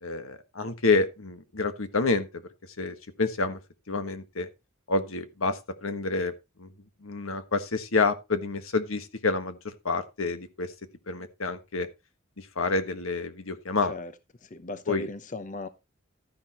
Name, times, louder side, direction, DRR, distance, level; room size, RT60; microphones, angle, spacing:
voice 1, 0.0-2.4 2.8-3.6 3.9-4.5 4.9-6.3 6.6-6.7 7.0-10.7 11.1-11.9 12.4-13.9 14.9-15.1, left 3 dB, 80° left, 1.5 m, -28 dB
voice 2, 13.8-14.1 14.4-15.7, left 2 dB, 40° left, 0.8 m, -37 dB
12.5 x 10.5 x 3.0 m
head